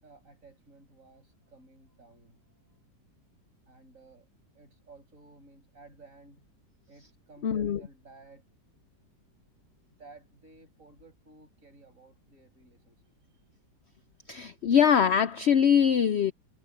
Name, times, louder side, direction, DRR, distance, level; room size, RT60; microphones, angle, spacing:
voice 1, 0.0-2.8 3.7-4.3 4.5-6.4 6.9-8.4 9.9-13.4 14.2-14.3, right 3 dB, 50° right, 7.9 m, -55 dB
voice 2, 7.4-7.8 14.3-16.3, left 8 dB, 85° left, 0.5 m, -23 dB
omnidirectional pair, 1.8 m